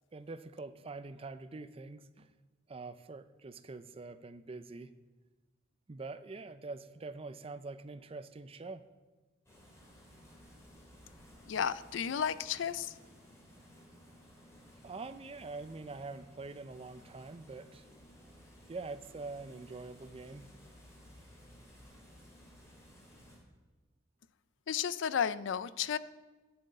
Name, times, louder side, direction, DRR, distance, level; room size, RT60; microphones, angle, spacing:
voice 1, 0.1-2.3 2.7-4.9 5.9-8.9 14.8-17.9 18.7-20.5, right 3 dB, 30° right, 12 dB, 0.5 m, -45 dB
sound 1, 9.5-23.4, equal, 15° left, 3.2 m, -57 dB
voice 2, 11.5-12.9 24.7-26.0, left 8 dB, 70° left, 16 dB, 0.4 m, -33 dB
7.8 x 7.8 x 8.2 m, 1.2 s
head